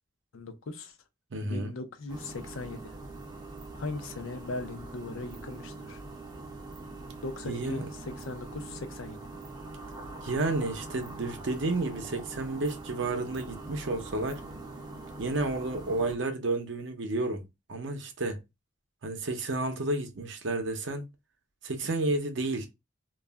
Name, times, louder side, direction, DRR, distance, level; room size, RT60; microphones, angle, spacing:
voice 1, 0.3-0.9 1.4-3.0 3.7-6.0 7.2-9.2, left 3 dB, 75° left, 0.5 m, -39 dB
voice 2, 1.3-1.7 7.4-7.9 10.2-14.4 15.2-17.4 17.7-18.4 19.0-21.0 21.6-22.7, right 2 dB, 60° right, 0.6 m, -31 dB
sound 1, 2.1-16.2, right 2 dB, 20° right, 0.5 m, -43 dB
2.3 x 2.1 x 3.4 m
head